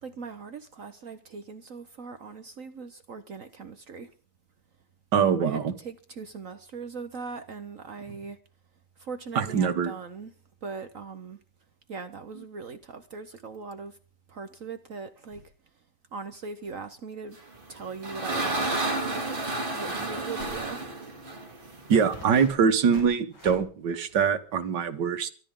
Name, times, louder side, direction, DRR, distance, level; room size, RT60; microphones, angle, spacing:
voice 1, 0.0-4.1 5.2-8.4 9.0-10.3 10.6-11.4 11.9-14.0 14.3-15.5 16.1-17.4 17.7-19.4 19.7-20.8, right 4 dB, 55° right, 1.3 m, -40 dB
voice 2, 5.1-5.7 9.4-9.9 21.9-25.3, right 6 dB, 85° right, 1.9 m, -23 dB
sound 1, 17.5-22.2, right 2 dB, 30° right, 2.2 m, -31 dB
sound 2, 20.4-20.7 21.4-21.5 22.1-23.6, left 1 dB, 85° left, 5.2 m, -44 dB
24.0 x 12.5 x 3.8 m
omnidirectional pair, 1.8 m